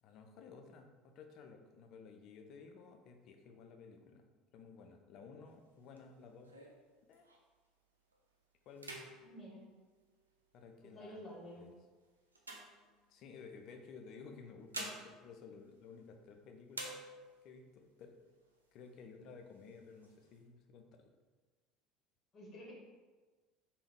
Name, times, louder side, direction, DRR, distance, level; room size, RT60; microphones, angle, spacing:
voice 1, 0.0-4.3 4.5-6.6 7.1-7.3 8.7-9.0 10.5-11.2 11.6-11.7 13.1-16.9 17.4-18.2 18.7-21.1, left 5 dB, 50° left, 4 dB, 0.4 m, -55 dB
sound 1, 5.5-7.7 8.1-8.4 8.7-10.6 11.3-13.4 14.3-16.3 16.7-17.6 18.0-18.1 18.4-19.0 19.5-20.4, right 2 dB, 80° right, 0.4 m, -50 dB
voice 2, 9.2-9.7 10.8-11.7 22.3-22.7, equal, 30° left, -3 dB, 1.0 m, -50 dB
3.4 x 2.4 x 3.4 m, 1.3 s
figure-of-eight pair, 65°, 0 cm